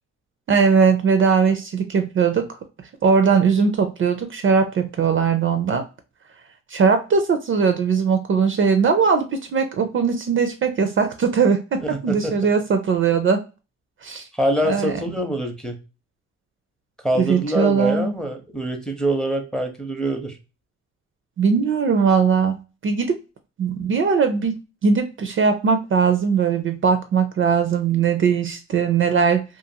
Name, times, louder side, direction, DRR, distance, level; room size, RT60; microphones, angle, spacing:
voice 1, 0.5-2.6 3.0-5.8 6.7-13.4 14.0-14.2 14.6-15.0 17.2-18.1 21.4-23.2 23.6-24.6 24.8-29.4, right 6 dB, 40° right, 0.4 m, -20 dB
voice 2, 11.9-12.3 14.4-15.8 17.0-20.4, right 1 dB, ahead, 0.6 m, -24 dB
2.5 x 2.4 x 2.7 m
cardioid pair, 90°, 30 cm